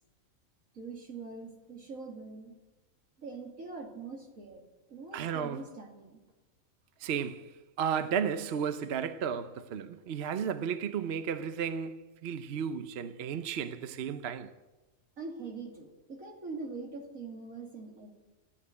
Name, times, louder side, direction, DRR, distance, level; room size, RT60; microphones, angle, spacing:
voice 1, 0.7-2.6 3.2-4.6 4.9-6.2 15.2-18.2, right 4 dB, 85° right, 3.0 m, -43 dB
voice 2, 5.1-5.6 7.0-7.5 7.8-14.5, right 7 dB, 55° right, 0.9 m, -33 dB
14.5 x 9.8 x 9.6 m
omnidirectional pair, 1.4 m